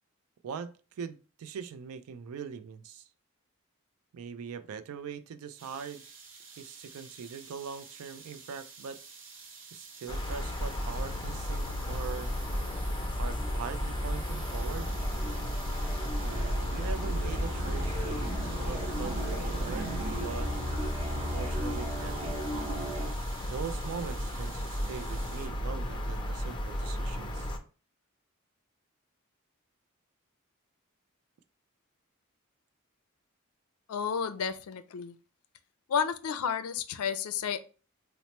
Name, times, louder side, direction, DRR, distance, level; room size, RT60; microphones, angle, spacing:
voice 1, 0.4-3.1 4.1-6.0 6.6-9.0 9.7-12.3 13.2-14.9 16.2-18.2 18.4-19.9 20.2-20.5 21.1-22.4 23.5-27.5, right 6 dB, 90° right, 0.4 m, -41 dB
sound 1, 5.6-25.5, right 5 dB, 60° right, 0.7 m, -50 dB
sound 2, 10.1-27.6, equal, 20° left, 0.5 m, -34 dB
sound 3, 11.7-23.1, right 1 dB, 20° right, 0.7 m, -38 dB
voice 2, 33.9-35.1 35.9-37.6, left 7 dB, 90° left, 0.4 m, -31 dB
4.2 x 2.0 x 2.9 m
head